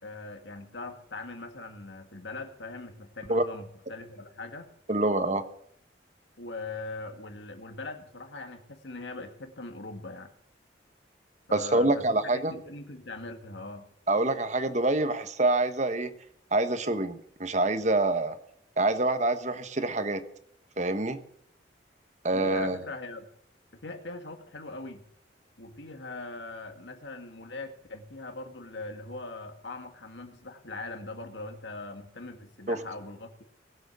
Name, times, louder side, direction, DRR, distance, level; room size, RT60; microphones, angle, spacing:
voice 1, 0.0-4.7 6.4-10.3 11.5-13.9 22.3-23.3 23.7-25.0 25.6-33.4, left 2 dB, 80° left, 5 dB, 2.0 m, -41 dB
voice 2, 4.9-5.4 11.5-12.5 14.1-16.1 16.5-18.4 18.8-20.2 20.8-21.2 22.2-22.8 32.7-32.8, right 2 dB, 40° right, 10 dB, 1.2 m, -26 dB
20.0 x 7.9 x 6.2 m, 0.71 s
head